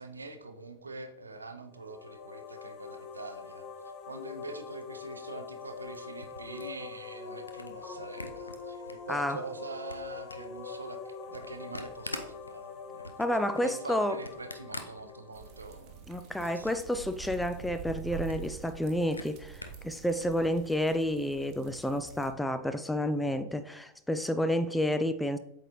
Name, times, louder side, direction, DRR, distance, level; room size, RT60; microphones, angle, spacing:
voice 1, 0.0-13.3 13.6-16.0 16.4-16.7, right 3 dB, 80° right, 0.6 m, -44 dB
sound 1, 1.7-16.3, left 6 dB, 40° left, 0.6 m, -44 dB
Camera, 5.6-9.2 9.6-15.7 16.1-17.0 17.3-17.4 17.7-17.8 18.1-19.9, left 2 dB, 80° left, 0.5 m, -46 dB
voice 2, 9.1-9.4 13.2-14.2 16.1-25.4, left 1 dB, 5° left, 0.3 m, -30 dB
sound 2, 15.3-22.3, right 7 dB, 40° right, 1.0 m, -45 dB
7.9 x 4.0 x 3.0 m
figure-of-eight pair, 90°, 0 cm